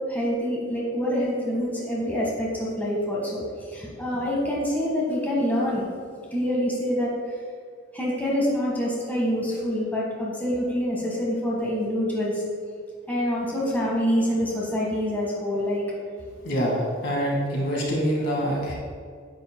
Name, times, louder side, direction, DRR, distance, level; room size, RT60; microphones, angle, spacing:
voice 1, 0.1-3.4 3.7-5.9 6.3-7.1 7.9-12.4 13.1-15.8, equal, 10° left, -4 dB, 1.7 m, -26 dB
voice 2, 16.4-18.7, equal, 65° left, -2 dB, 2.0 m, -25 dB
9.9 x 8.6 x 2.3 m, 2.1 s
head